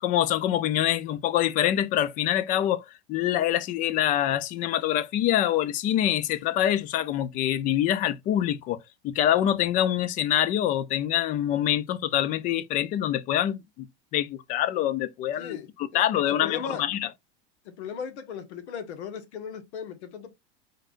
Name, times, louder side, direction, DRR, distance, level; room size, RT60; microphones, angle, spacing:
voice 1, 0.0-8.8 9.0-13.9 14.1-17.1, left 12 dB, 25° left, 0.4 m, -25 dB
voice 2, 15.9-16.9 17.6-20.3, left 7 dB, 80° left, 1.6 m, -37 dB
4.7 x 4.4 x 2.4 m
supercardioid pair, 150°, 33 cm